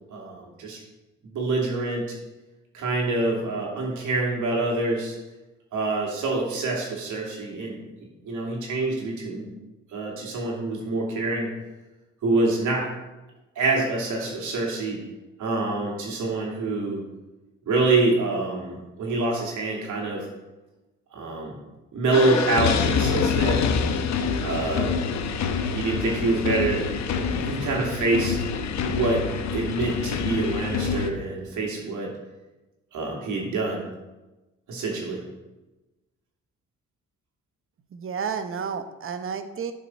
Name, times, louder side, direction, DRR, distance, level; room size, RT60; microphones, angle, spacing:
voice 1, 0.1-0.8 1.2-2.1 2.7-5.2 5.7-7.8 8.2-9.5 9.9-11.5 12.2-12.9 13.6-15.0 15.4-17.0 17.7-20.3 21.1-21.6 21.9-23.7 24.4-24.9 25.6-26.9 27.1-28.4 28.9-29.3 29.5-32.1 32.9-33.9 34.7-35.2, right 3 dB, 75° right, -1 dB, 2.7 m, -26 dB
sound 1, 22.1-31.1, left 6 dB, 65° left, 0.9 m, -26 dB
voice 2, 37.9-39.7, right 6 dB, 45° right, 9 dB, 0.9 m, -31 dB
11.0 x 6.0 x 4.4 m, 1.1 s
cardioid pair, 90°, 30 cm